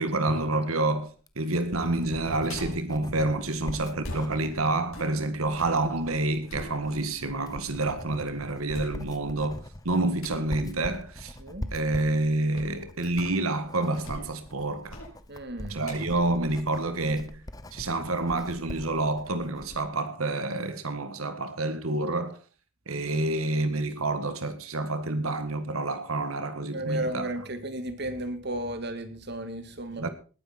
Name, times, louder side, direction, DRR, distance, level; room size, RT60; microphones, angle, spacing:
voice 1, 0.0-11.4 11.7-15.0 15.7-17.4 17.7-22.4 22.9-27.3 30.0-30.1, right 2 dB, 90° right, 1.8 m, -28 dB
Writing, 1.1-19.9, left 1 dB, 15° left, 1.0 m, -43 dB
sound 1, 2.5-2.9 4.0-5.8 6.2-7.3 7.8-7.9 8.7-9.4 10.2-10.5 12.5-12.8 13.1-13.5 13.9-14.5 14.9-15.2 15.8-17.5 17.9-18.0, left 1 dB, 80° left, 6.4 m, -42 dB
voice 2, 15.3-16.0 26.7-30.1, right 1 dB, 50° right, 2.2 m, -34 dB
19.5 x 9.7 x 4.4 m
head